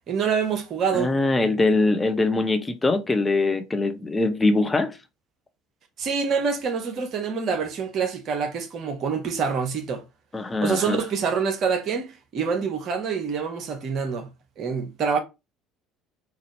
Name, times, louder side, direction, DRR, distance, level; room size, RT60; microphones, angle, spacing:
voice 1, 0.1-1.1 6.0-10.0 10.6-14.3 14.6-15.2, right 6 dB, 50° right, 1.1 m, -26 dB
voice 2, 0.9-5.0 10.3-11.0, left 2 dB, 20° left, 0.6 m, -22 dB
4.1 x 2.7 x 3.1 m
hypercardioid pair, 60°, 0 cm